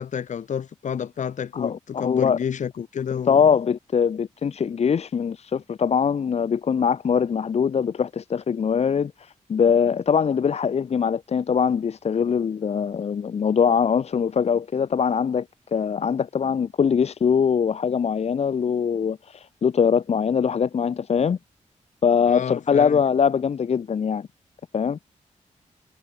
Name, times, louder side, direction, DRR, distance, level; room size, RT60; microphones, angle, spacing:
voice 1, 0.0-3.6 22.2-23.0, left 8 dB, 75° left, 2.5 m, -29 dB
voice 2, 1.5-2.4 3.1-15.4 15.7-21.4 22.0-24.3 24.7-25.0, left 7 dB, 55° left, 1.4 m, -22 dB
wide cardioid pair, 150°, 13 cm